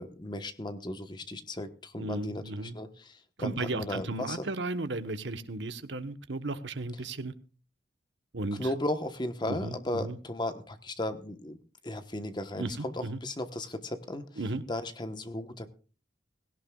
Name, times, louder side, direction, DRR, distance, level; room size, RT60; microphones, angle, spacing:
voice 1, 0.0-4.5 8.6-11.6 11.8-14.3 14.7-15.7, left 1 dB, 25° left, 9 dB, 1.1 m, -35 dB
voice 2, 2.0-2.8 3.4-7.3 8.3-8.7 9.5-10.2 12.6-13.2 14.4-14.6, right 2 dB, 75° right, 10 dB, 1.1 m, -35 dB
18.0 x 17.0 x 2.4 m, 0.36 s
head